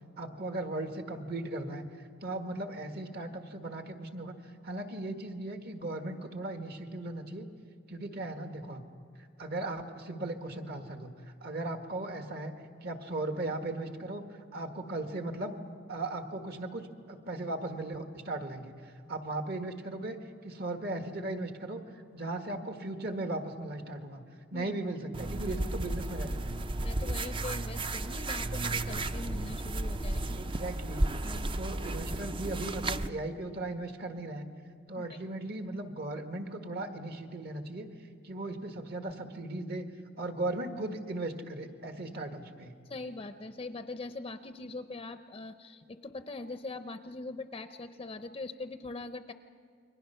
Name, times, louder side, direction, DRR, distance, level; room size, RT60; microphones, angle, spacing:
voice 1, 0.2-1.8 2.2-4.4 4.6-7.5 7.9-8.8 9.4-11.1 11.4-12.5 12.8-14.2 14.5-15.6 15.9-20.2 20.4-21.8 22.1-24.2 24.5-26.5 30.3-31.1 31.6-34.5 34.9-37.9 38.2-39.9 40.2-42.7, right 2 dB, 55° right, 5 dB, 1.7 m, -37 dB
sound 1, 25.1-33.1, right 2 dB, 25° right, 0.5 m, -33 dB
voice 2, 26.8-30.4 31.2-31.6 35.0-35.2 42.9-49.3, left 2 dB, 25° left, 9 dB, 0.6 m, -42 dB
29.5 x 22.5 x 5.7 m, 2.3 s
head